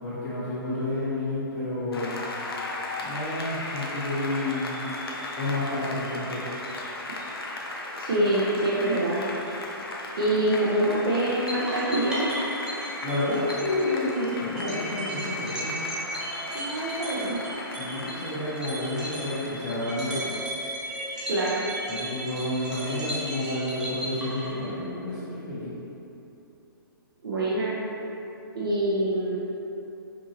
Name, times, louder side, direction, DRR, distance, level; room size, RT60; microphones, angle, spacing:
voice 1, 0.0-2.2 3.0-4.9 5.3-6.5 13.0-15.7 17.8-20.2 21.9-25.7, left 1 dB, 30° left, -10 dB, 1.4 m, -30 dB
Applause, 1.9-20.2, left 2 dB, 80° left, 0.6 m, -37 dB
voice 2, 7.9-9.2 10.2-12.3 16.5-17.4 21.3-21.6 27.2-27.8 28.5-29.4, right 1 dB, 75° right, -7 dB, 0.8 m, -25 dB
sound 1, 11.5-24.9, equal, 5° right, 0.7 m, -35 dB
5.2 x 2.8 x 2.8 m, 2.9 s
hypercardioid pair, 135°, 12 cm